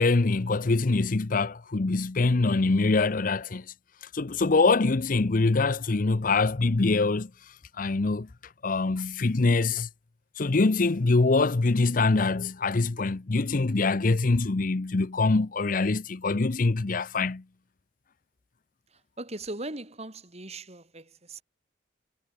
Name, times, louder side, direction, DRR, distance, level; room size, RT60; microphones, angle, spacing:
voice 1, 0.0-3.6 4.1-7.3 7.8-8.3 8.6-9.9 10.4-17.4, left 3 dB, 45° left, 0.7 m, -24 dB
voice 2, 18.9-21.4, right 2 dB, 35° right, 4.8 m, -39 dB
head